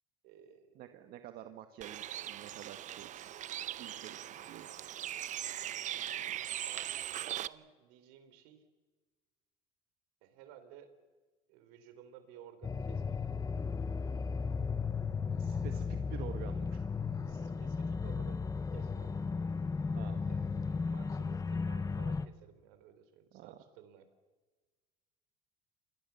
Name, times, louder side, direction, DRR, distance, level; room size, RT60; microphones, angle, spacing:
voice 1, 0.2-1.2 3.8-4.4 6.7-8.7 10.2-10.9 11.5-13.2 17.2-18.4 18.7-19.1 20.3-24.1, right 9 dB, 85° right, 10 dB, 4.0 m, -56 dB
voice 2, 0.7-3.3 3.8-4.7 15.4-16.8 19.9-20.2 23.3-23.6, right 11 dB, 65° right, 7 dB, 1.8 m, -49 dB
Bird, 1.8-7.5, right 12 dB, 50° right, 0.8 m, -40 dB
sound 1, 12.6-22.3, left 5 dB, 20° left, 1.1 m, -35 dB
28.5 x 22.0 x 7.2 m, 1.3 s
supercardioid pair, 105°, 17 cm